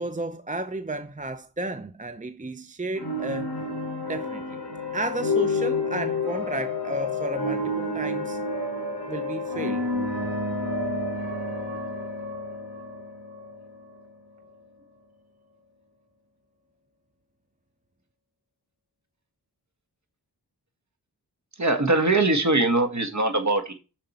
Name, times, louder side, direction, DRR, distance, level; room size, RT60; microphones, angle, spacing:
voice 1, 0.0-3.5 4.0-4.6 4.9-8.4 9.1-9.8, right 2 dB, 20° right, 0.6 m, -33 dB
sound 1, 3.0-14.6, left 2 dB, 70° left, 3.0 m, -30 dB
voice 2, 21.6-23.7, right 2 dB, 45° right, 1.6 m, -22 dB
7.6 x 6.5 x 4.3 m
wide cardioid pair, 55°, 40 cm